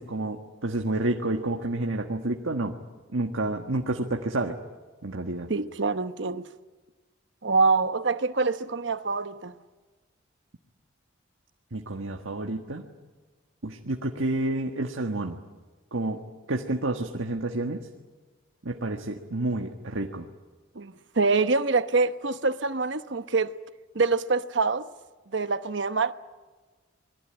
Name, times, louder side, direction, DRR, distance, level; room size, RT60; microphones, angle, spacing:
voice 1, 0.0-2.8 3.1-4.6 5.0-5.5 11.7-12.8 13.6-15.4 15.9-16.2 16.5-17.9 18.6-20.3, right 2 dB, 80° right, 1.5 m, -29 dB
voice 2, 5.5-6.5 7.4-9.5 20.7-23.5 23.9-24.9 25.3-26.1, right 4 dB, 65° right, 1.0 m, -25 dB
27.0 x 22.0 x 8.9 m
head